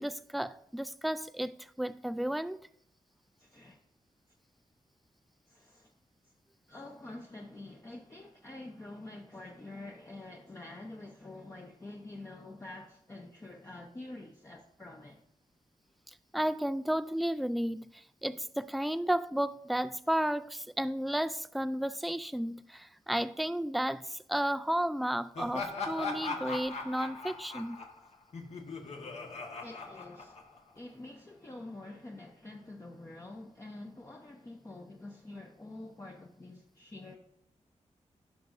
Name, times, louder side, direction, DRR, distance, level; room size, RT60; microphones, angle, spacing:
voice 1, 0.0-1.5 1.8-2.6 16.3-27.8, right 1 dB, ahead, 0.3 m, -33 dB
voice 2, 3.4-3.8 5.5-5.9 6.7-15.2 29.6-30.4 30.7-37.2, left 2 dB, 20° left, 0.8 m, -47 dB
Laughter, 25.3-30.8, left 3 dB, 60° left, 1.5 m, -39 dB
16.0 x 5.9 x 2.6 m
wide cardioid pair, 110°, 12 cm